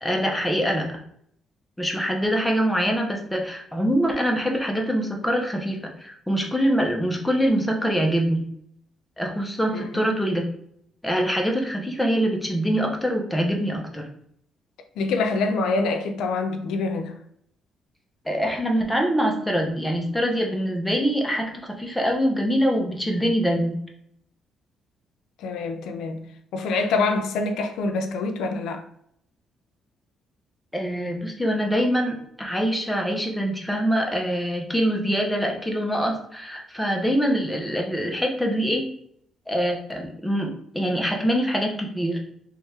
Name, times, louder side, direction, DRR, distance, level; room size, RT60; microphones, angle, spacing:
voice 1, 0.0-0.9 1.8-8.4 9.2-10.4 11.0-14.0 18.2-23.8 30.7-38.9 39.5-42.2, equal, 5° left, 0.9 m, -24 dB
voice 2, 9.7-10.1 15.0-17.1 25.4-26.3 26.5-28.8, left 3 dB, 85° left, 0.4 m, -26 dB
3.1 x 2.9 x 3.5 m
cardioid pair, 90°, 0 cm